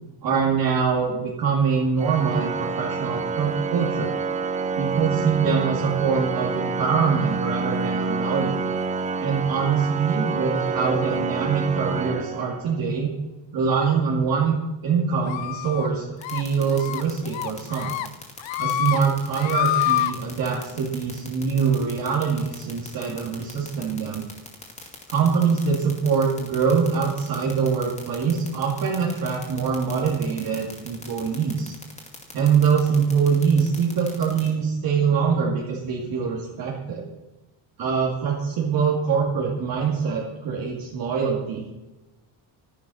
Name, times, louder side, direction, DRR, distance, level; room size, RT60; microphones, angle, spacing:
voice 1, 0.2-4.1 4.8-8.6 9.2-13.1 13.5-14.6 14.8-18.0 18.6-24.2 25.1-31.7 32.3-37.0 37.8-41.7, right 6 dB, 50° right, -3 dB, 2.5 m, -24 dB
Organ, 2.0-13.0, right 4 dB, 15° right, 0.5 m, -28 dB
sound 1, 15.3-15.9 16.2-16.4 16.8-17.0 17.3-18.1 18.4-19.0 19.3-20.1, left 13 dB, 80° left, 0.9 m, -26 dB
sound 2, 16.2-34.5, left 3 dB, 15° left, 2.4 m, -40 dB
13.0 x 10.5 x 6.3 m, 1.0 s
cardioid pair, 175°, 45 cm